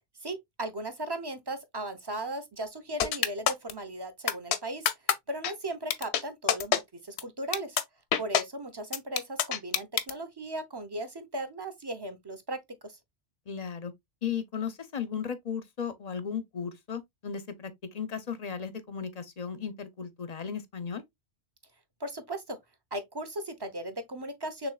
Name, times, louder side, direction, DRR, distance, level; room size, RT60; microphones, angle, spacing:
voice 1, 0.2-4.9 5.3-7.8 8.2-12.6 12.8-13.0 22.0-22.6 22.9-24.7, right 1 dB, 25° right, 0.7 m, -37 dB
sound 1, 3.0-3.7 4.3-4.6 4.8-5.1 5.4-5.5 5.9-6.2 6.5-6.8 7.2-7.3 7.5-7.8 8.1-8.4 8.9-10.1, left 9 dB, 90° left, 0.9 m, -25 dB
voice 2, 13.5-13.9 14.2-21.0, left 7 dB, 45° left, 0.6 m, -36 dB
6.3 x 3.2 x 2.3 m
omnidirectional pair, 1.1 m